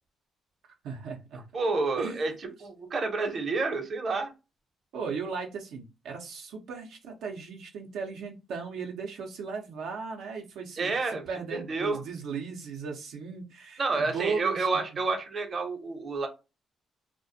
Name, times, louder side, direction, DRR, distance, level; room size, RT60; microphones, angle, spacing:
voice 1, 0.8-1.4 2.0-2.2 4.9-11.0 11.3-14.8, right 5 dB, 80° right, 0 dB, 0.5 m, -36 dB
voice 2, 1.5-2.3 2.6-4.3 10.8-11.2 11.5-12.0 13.8-16.3, right 3 dB, 45° right, 4 dB, 0.7 m, -29 dB
2.4 x 2.1 x 2.6 m, 0.27 s
cardioid pair, 90°, 0 cm